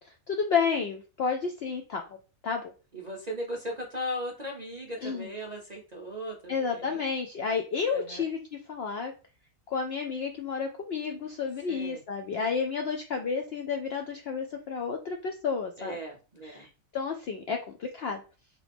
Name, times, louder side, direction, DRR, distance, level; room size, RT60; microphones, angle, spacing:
voice 1, 0.3-2.0 2.4-2.7 5.0-5.3 6.5-9.1 9.7-16.0 16.4-16.7 16.9-18.2, left 5 dB, 70° left, 4 dB, 0.6 m, -31 dB
voice 2, 2.9-7.0 7.9-8.3 11.7-12.0 15.8-16.7, equal, 45° right, 0 dB, 0.5 m, -37 dB
3.8 x 3.0 x 3.4 m, 0.34 s
omnidirectional pair, 1.5 m